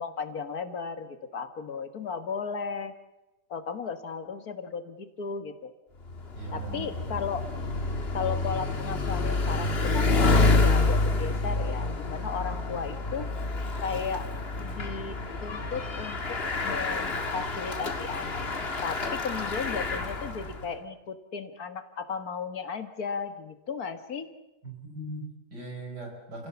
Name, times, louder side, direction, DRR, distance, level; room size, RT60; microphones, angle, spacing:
voice 1, 0.0-2.9 3.5-5.7 6.5-7.5 8.1-13.3 13.8-14.3 14.6-16.3 16.6-24.3, left 5 dB, 60° left, 10 dB, 1.9 m, -35 dB
Bicycle, 6.0-20.7, left 2 dB, 40° left, 1.9 m, -28 dB
voice 2, 6.3-6.9 24.6-26.5, right 2 dB, 80° right, 1 dB, 5.7 m, -39 dB
29.5 x 16.5 x 7.0 m, 0.98 s
omnidirectional pair, 1.8 m